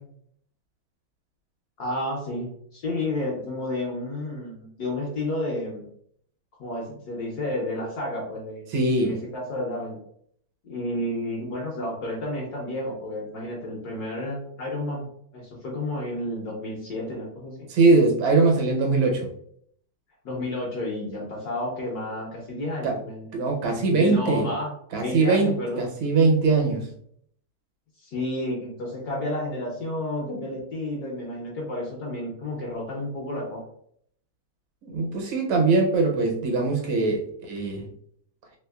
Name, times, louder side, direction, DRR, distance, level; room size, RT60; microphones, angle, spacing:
voice 1, 1.8-5.9 6.6-8.7 9.0-10.0 10.6-15.1 15.3-17.7 20.2-23.3 23.9-25.8 28.0-33.6, left 1 dB, 65° left, -2 dB, 1.0 m, -31 dB
voice 2, 8.7-9.2 17.7-19.3 22.8-22.9 23.3-24.5 24.9-26.9 34.8-37.9, right 3 dB, 75° right, 1 dB, 1.6 m, -21 dB
3.5 x 3.0 x 2.3 m, 0.66 s
omnidirectional pair, 2.3 m